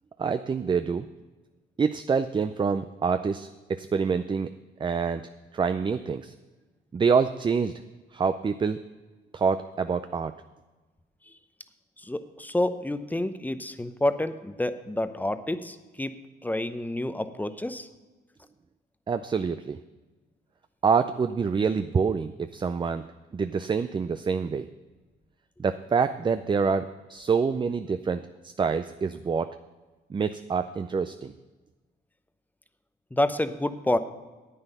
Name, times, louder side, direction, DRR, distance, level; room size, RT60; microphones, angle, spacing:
voice 1, 0.2-1.1 1.8-4.5 4.8-6.3 6.9-7.7 8.1-8.8 9.3-10.3 19.1-19.8 20.8-23.0 23.3-24.7 25.6-29.5 30.1-31.3, right 5 dB, 25° right, 10 dB, 0.4 m, -26 dB
voice 2, 12.0-16.2 16.4-17.9 33.1-34.0, left 1 dB, 10° left, 11 dB, 0.7 m, -28 dB
9.8 x 8.9 x 5.4 m, 1.2 s
cardioid pair, 90°, 20 cm